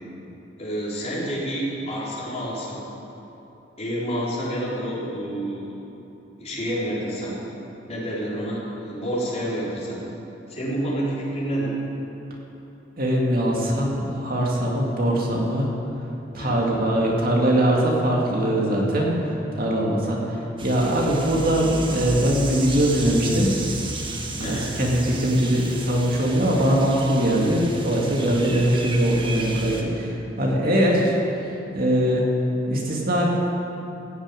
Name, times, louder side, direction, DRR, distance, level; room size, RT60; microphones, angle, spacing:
voice 1, 0.6-2.8 3.8-5.7 6.4-7.4 7.9-10.0 10.5-11.8 16.3-16.6 20.0-20.4 24.4-24.7, right 1 dB, 35° left, -7 dB, 3.9 m, -29 dB
voice 2, 13.0-15.7 16.3-19.2 19.5-23.5 24.4-31.2 31.7-32.2 32.7-33.3, right 1 dB, 55° right, -2 dB, 2.1 m, -21 dB
sound 1, 20.6-29.8, right 2 dB, 30° right, 1.3 m, -34 dB
15.5 x 7.1 x 9.0 m, 2.9 s
head